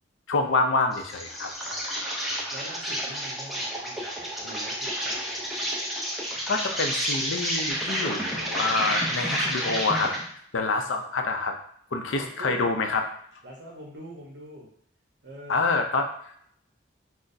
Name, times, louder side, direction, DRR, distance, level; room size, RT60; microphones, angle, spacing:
voice 1, 0.3-1.5 6.5-10.1 10.5-11.5 11.9-13.0 15.5-16.1, left 3 dB, 80° left, 4 dB, 0.5 m, -26 dB
Insect, 0.9-10.3, equal, ahead, 0.5 m, -30 dB
voice 2, 1.6-4.1 4.4-5.5 12.1-12.8 13.4-14.7 15.2-15.6, right 1 dB, 60° right, -3 dB, 1.0 m, -44 dB
6.0 x 2.1 x 2.6 m, 0.65 s
head